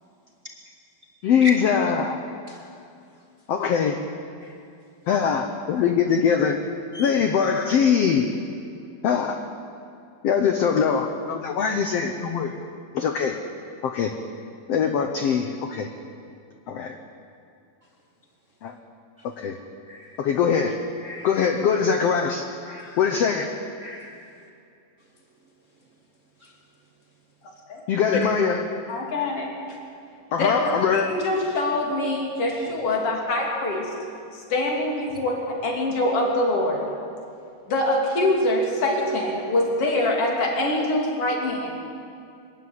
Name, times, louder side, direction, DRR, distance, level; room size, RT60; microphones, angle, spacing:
voice 1, 1.2-2.2 3.5-4.0 5.1-6.6 7.0-8.3 9.0-9.4 10.2-12.5 12.9-13.4 13.8-14.1 14.7-15.9 16.7-17.0 18.6-18.7 19.4-19.6 20.2-20.8 21.2-22.4 23.0-23.6 27.9-28.6 30.3-31.1, left 7 dB, 90° left, 6 dB, 1.4 m, -22 dB
voice 2, 22.7-23.0 23.8-24.1, left 1 dB, 75° right, 0 dB, 0.7 m, -36 dB
voice 3, 28.9-29.5 30.4-33.9 34.3-36.8 37.7-41.7, left 1 dB, 40° left, 0 dB, 3.7 m, -24 dB
23.0 x 13.0 x 9.6 m, 2.5 s
omnidirectional pair, 4.2 m